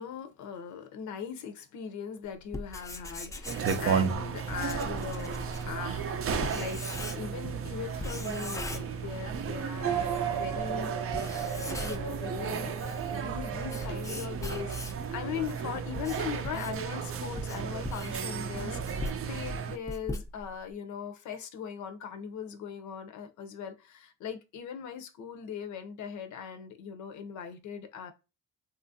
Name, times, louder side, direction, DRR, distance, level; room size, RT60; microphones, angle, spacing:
voice 1, 0.0-11.0 11.8-12.8 13.1-28.1, left 7 dB, 75° left, 0.6 m, -40 dB
Writing, 2.4-7.5 8.0-9.5 9.8-9.9 10.5-10.6 11.0-12.2 12.6-15.1 15.7-20.7, left 2 dB, 10° left, 0.4 m, -40 dB
sound 1, 3.5-19.8, right 6 dB, 50° right, 0.5 m, -34 dB
sound 2, 9.8-14.6, right 8 dB, 80° right, 0.9 m, -36 dB
2.8 x 2.4 x 2.6 m
cardioid pair, 90°, 30 cm